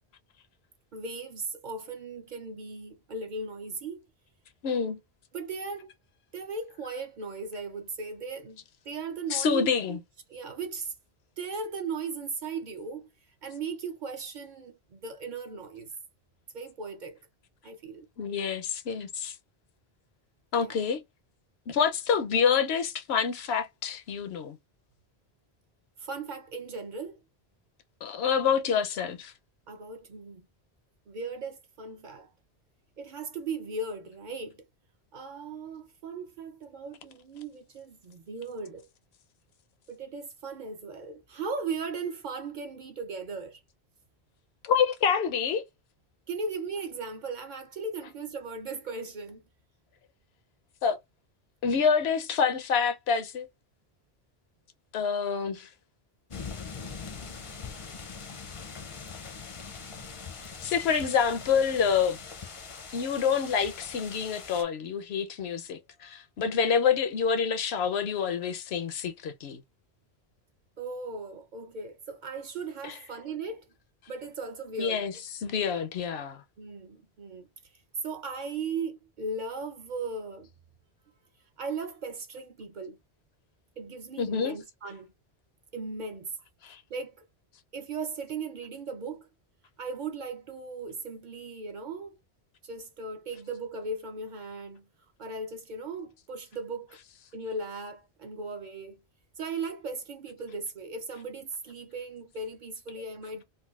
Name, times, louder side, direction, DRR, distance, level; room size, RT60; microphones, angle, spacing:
voice 1, 0.9-4.0 5.3-5.9 6.3-10.0 10.3-10.9 11.4-13.1 13.4-15.9 16.5-17.2 17.6-18.1 20.6-20.8 26.0-27.2 29.7-30.5 31.1-32.3 33.0-34.6 35.1-38.9 39.9-43.6 46.3-49.4 57.9-58.1 66.4-66.7 70.8-73.6 74.1-75.0 76.6-77.5 78.0-80.5 81.6-83.0 83.8-85.1 85.7-86.3 86.9-87.3 87.7-89.3 89.8-92.2 92.6-94.9 95.2-97.0 97.3-99.0 99.4-103.4, right 4 dB, 55° right, 0.6 m, -37 dB
voice 2, 4.6-5.0 9.3-10.0 18.2-19.3 20.5-21.0 21.7-24.6 28.0-29.3 44.6-45.6 50.8-51.0 51.6-53.5 54.9-55.7 60.6-62.2 62.9-69.6 72.8-72.9 74.8-75.1 75.4-76.4 84.2-84.5 86.6-86.8, left 6 dB, 75° left, 0.8 m, -27 dB
sound 1, 56.3-64.6, left 5 dB, 40° left, 0.5 m, -42 dB
3.8 x 2.2 x 2.3 m
omnidirectional pair, 1.1 m